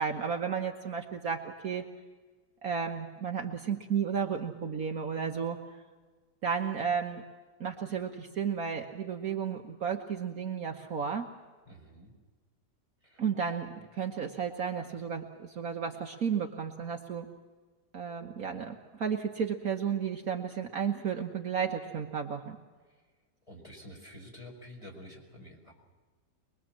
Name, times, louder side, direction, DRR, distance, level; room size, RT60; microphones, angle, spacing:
voice 1, 0.0-1.8 2.6-5.6 6.4-7.2 7.6-11.3 13.2-17.3 17.9-22.6, right 7 dB, 55° right, 3 dB, 1.6 m, -33 dB
voice 2, 11.7-12.1 13.0-13.2 22.9-23.0 23.4-25.8, equal, 15° left, -1 dB, 5.6 m, -49 dB
23.0 x 22.5 x 7.5 m, 1.4 s
omnidirectional pair, 1.9 m